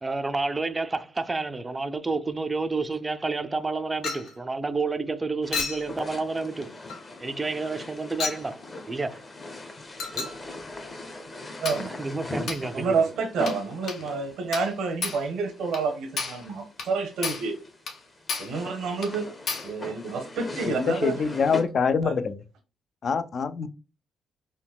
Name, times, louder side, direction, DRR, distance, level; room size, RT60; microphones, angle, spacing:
voice 1, 0.0-6.7 7.2-9.3 10.1-10.3 12.0-13.1, right 3 dB, 20° right, 0.4 m, -30 dB
Chink clink, 4.0-4.4 5.5-5.9 6.9-7.1 8.2-8.5 10.0-10.4 11.7-11.9 12.5-12.7 13.5-13.6 13.9-14.0 14.5-14.8 15.0-15.3 15.7-15.9 16.2-16.5 16.8-16.9 17.2-17.5 17.9-18.0 18.3-18.6 19.0-19.1 19.5-19.7, left 4 dB, 70° left, 0.8 m, -32 dB
sound 1, 5.4-21.6, left 2 dB, 30° left, 0.8 m, -41 dB
voice 2, 11.6-12.0 12.7-17.6 18.4-19.3 19.6-21.3 22.0-22.1, right 4 dB, 80° right, 0.8 m, -29 dB
voice 3, 20.6-22.4 23.0-23.7, left 5 dB, 50° left, 0.4 m, -25 dB
3.8 x 2.2 x 2.2 m
cardioid pair, 90°, 0 cm